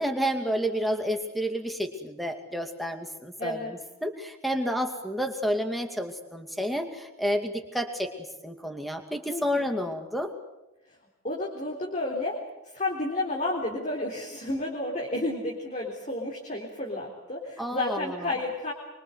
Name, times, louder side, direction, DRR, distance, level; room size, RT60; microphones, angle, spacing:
voice 1, 0.0-8.1 8.4-10.3 17.6-18.3, equal, ahead, 5 dB, 2.4 m, -30 dB
voice 2, 3.4-3.7 9.3-9.7 10.9-11.0 11.2-18.7, left 2 dB, 35° left, -2 dB, 3.8 m, -31 dB
25.0 x 24.5 x 8.1 m, 0.93 s
head